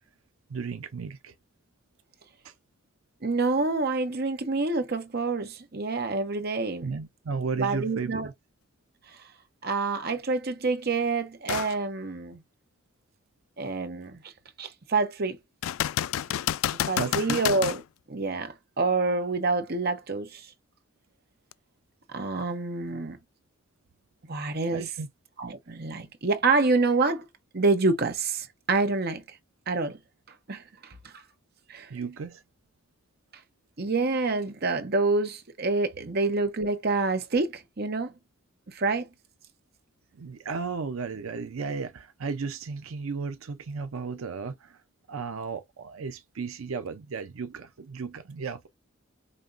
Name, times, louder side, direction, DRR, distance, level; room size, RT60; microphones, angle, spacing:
voice 1, 0.5-1.3 2.4-2.5 6.8-8.3 16.8-17.4 24.7-25.1 31.9-32.4 40.1-44.8 45.1-48.7, right 5 dB, 85° right, 0.5 m, -34 dB
voice 2, 3.2-6.9 7.6-8.3 9.6-12.4 13.6-14.2 14.6-15.4 16.9-17.8 18.1-20.5 22.1-23.2 24.3-24.8 25.4-27.3 27.5-29.2 29.7-30.0 30.5-30.9 31.7-31.9 33.8-38.1 38.7-39.1, right 3 dB, 50° right, 0.9 m, -27 dB
sound 1, 11.5-11.8 12.3-12.4 15.6-17.8 21.5-21.6, left 11 dB, 75° left, 0.3 m, -29 dB
5.1 x 2.9 x 2.5 m
head